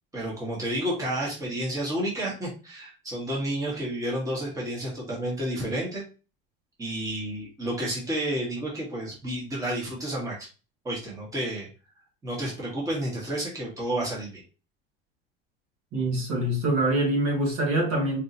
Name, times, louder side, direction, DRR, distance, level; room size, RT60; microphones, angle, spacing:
voice 1, 0.1-6.0 6.8-10.5 10.8-11.7 12.2-14.4, right 1 dB, 10° right, 1.5 m, -30 dB
voice 2, 15.9-18.2, right 1 dB, 50° right, 2.0 m, -25 dB
4.2 x 3.4 x 2.7 m
cardioid pair, 140°, 29 cm